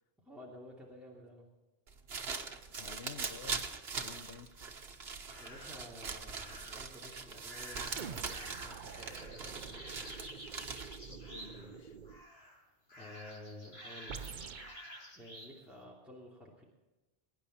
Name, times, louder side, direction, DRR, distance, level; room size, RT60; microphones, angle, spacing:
voice 1, 0.2-1.5 5.4-10.2 13.0-14.2 15.1-16.6, left 1 dB, ahead, 2.8 m, -52 dB
sound 1, 1.9-11.1, right 5 dB, 75° right, 1.4 m, -42 dB
voice 2, 2.8-3.7 3.9-4.5 11.1-12.0, left 6 dB, 70° left, 1.1 m, -50 dB
sound 2, 5.3-5.8 6.3-6.9 7.4-11.8 12.0-12.6 12.9-15.5, equal, 90° left, 6.4 m, -51 dB
sound 3, 8.0-12.3 14.1-14.8, right 7 dB, 55° right, 0.8 m, -47 dB
22.5 x 10.5 x 4.3 m
omnidirectional pair, 1.0 m